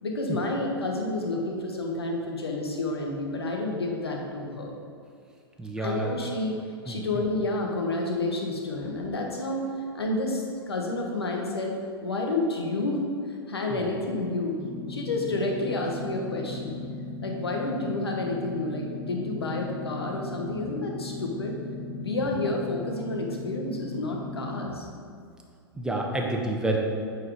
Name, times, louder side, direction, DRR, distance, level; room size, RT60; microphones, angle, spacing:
voice 1, 0.0-4.7 5.8-6.6 6.8-9.7 9.9-14.6 14.9-16.8 17.2-21.6 21.9-24.9, left 2 dB, 80° left, 0 dB, 1.3 m, -30 dB
voice 2, 5.6-6.1 6.9-7.2 13.7-13.9 25.7-26.8, right 2 dB, 5° right, 0 dB, 1.1 m, -29 dB
sound 1, 14.6-24.7, left 2 dB, 55° left, 1.7 m, -37 dB
8.4 x 4.7 x 5.1 m, 2.3 s
figure-of-eight pair, 100°, 13 cm